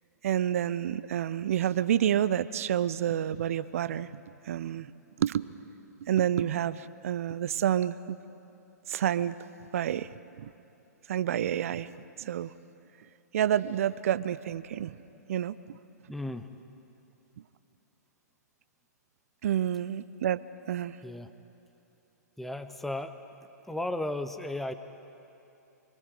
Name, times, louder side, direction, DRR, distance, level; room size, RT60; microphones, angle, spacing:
voice 1, 0.2-4.1 4.5-4.9 5.2-5.4 6.0-8.2 8.9-9.4 9.7-10.1 10.4-10.5 11.1-11.9 12.2-12.5 13.3-14.9 15.3-15.8 19.4-21.0, right 10 dB, 55° right, 17 dB, 0.5 m, -29 dB
voice 2, 16.1-16.5 21.0-21.3 22.4-23.2 23.7-24.7, left 1 dB, ahead, 9 dB, 0.7 m, -34 dB
25.0 x 23.0 x 4.8 m, 2.9 s
figure-of-eight pair, 115°, 9 cm